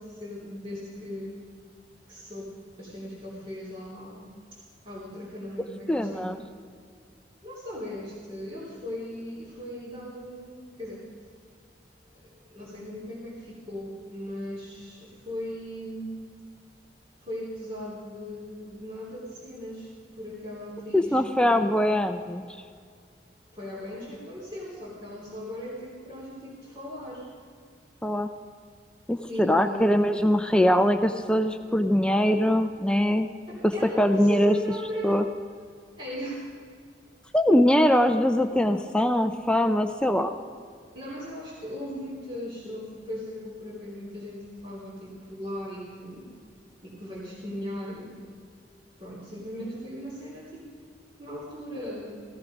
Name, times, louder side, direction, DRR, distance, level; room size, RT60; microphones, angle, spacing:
voice 1, 0.0-1.4 2.1-6.4 7.4-11.1 12.1-16.2 17.2-21.8 23.5-27.3 29.3-29.9 33.5-35.1 36.0-36.5 40.9-46.3 46.8-48.2 49.0-50.7 51.2-52.2, left 1 dB, 30° right, -7 dB, 3.1 m, -38 dB
voice 2, 5.9-6.4 20.9-22.5 28.0-28.3 29.1-33.3 33.6-33.7 34.0-34.5 35.0-35.2 37.3-40.3, equal, 5° left, 7 dB, 0.5 m, -22 dB
17.0 x 14.0 x 5.2 m, 2.2 s
head